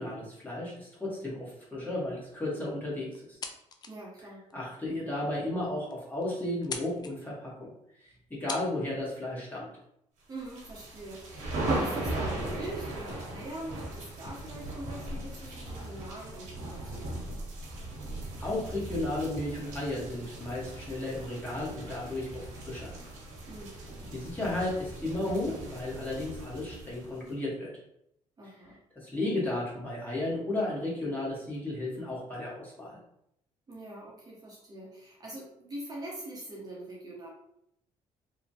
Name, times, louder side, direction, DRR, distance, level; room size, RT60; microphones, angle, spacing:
voice 1, 0.0-3.4 4.5-7.7 8.0-9.7 18.4-22.9 24.1-27.7 28.9-33.0, left 1 dB, 15° left, -6 dB, 1.2 m, -34 dB
sound 1, 3.1-4.0 4.5-4.6 5.2-5.3 5.6-5.7 5.9-6.3 6.6-7.1 8.0-8.1 8.5-8.7, left 5 dB, 35° left, 0.4 m, -40 dB
voice 2, 3.9-4.5 10.3-17.2 23.5-24.0 28.4-28.8 33.7-37.3, right 1 dB, 30° right, -4 dB, 0.8 m, -43 dB
sound 2, 10.4-27.3, right 1 dB, 85° right, 0.9 m, -38 dB
3.1 x 2.1 x 2.7 m, 0.76 s
cardioid pair, 95°, 12 cm